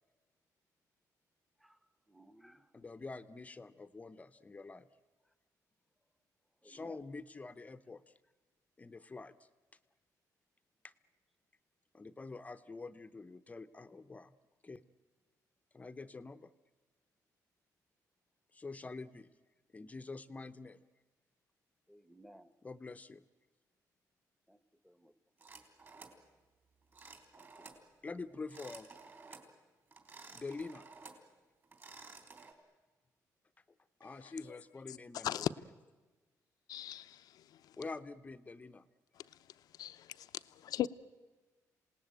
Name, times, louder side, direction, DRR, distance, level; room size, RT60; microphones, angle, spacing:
voice 1, 2.1-2.7 6.6-7.0 21.9-22.5 24.5-24.6 24.8-25.1 27.4-27.5, equal, ahead, 1.0 m, -58 dB
voice 2, 2.7-4.9 6.6-8.1 8.8-9.5 10.8-10.9 11.9-14.3 14.6-14.8 15.7-16.5 18.5-19.3 19.7-20.8 22.6-23.2 28.0-28.9 30.3-30.9 34.0-35.7 37.8-38.9, left 3 dB, 20° left, 0.8 m, -46 dB
sound 1, 25.4-26.2 26.9-27.8 28.4-29.5 29.9-31.3 31.6-32.5, right 4 dB, 35° right, 3.6 m, -54 dB
voice 3, 36.7-37.2 39.8-40.1 40.6-40.9, left 12 dB, 75° left, 0.7 m, -35 dB
27.0 x 18.5 x 9.1 m
cardioid pair, 115°, 7 cm